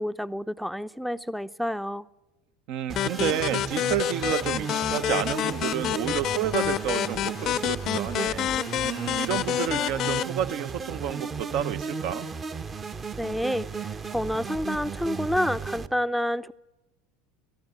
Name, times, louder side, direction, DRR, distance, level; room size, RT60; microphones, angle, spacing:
voice 1, 0.0-2.1 13.2-16.5, equal, ahead, 0.7 m, -29 dB
voice 2, 2.7-8.5 8.8-12.3, right 10 dB, 55° right, 1.1 m, -30 dB
sound 1, 2.9-15.9, right 5 dB, 30° right, 1.1 m, -35 dB
sound 2, 3.0-10.2, left 12 dB, 45° left, 0.7 m, -28 dB
25.0 x 14.5 x 9.7 m
figure-of-eight pair, 75°, 0 cm